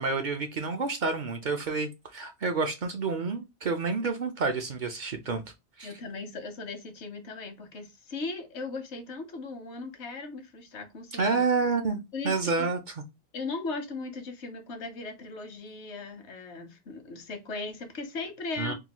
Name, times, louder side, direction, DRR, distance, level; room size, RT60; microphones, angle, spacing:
voice 1, 0.0-5.4 5.8-5.9 11.1-12.8 18.6-18.7, right 4 dB, 55° right, 0.6 m, -29 dB
voice 2, 5.8-11.4 12.1-12.7 13.3-18.7, left 3 dB, 80° left, 1.1 m, -38 dB
3.8 x 2.3 x 2.9 m
omnidirectional pair, 1.1 m